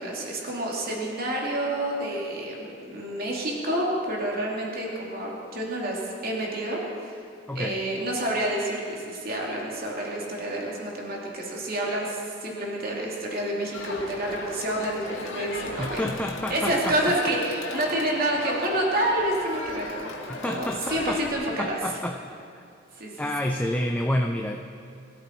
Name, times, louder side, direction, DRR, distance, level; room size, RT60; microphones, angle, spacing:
voice 1, 0.0-7.2 7.5-16.0 16.5-20.1 20.4-21.8 23.0-23.1, right 1 dB, 50° right, -3 dB, 2.9 m, -28 dB
Crowd, 13.7-21.3, left 2 dB, 80° left, 2.0 m, -36 dB
voice 2, 15.8-16.9 20.3-21.2 21.6-22.2 22.5-22.6 23.2-24.6, left 1 dB, 10° left, 2 dB, 0.6 m, -28 dB
22.0 x 13.5 x 4.6 m, 2.4 s
head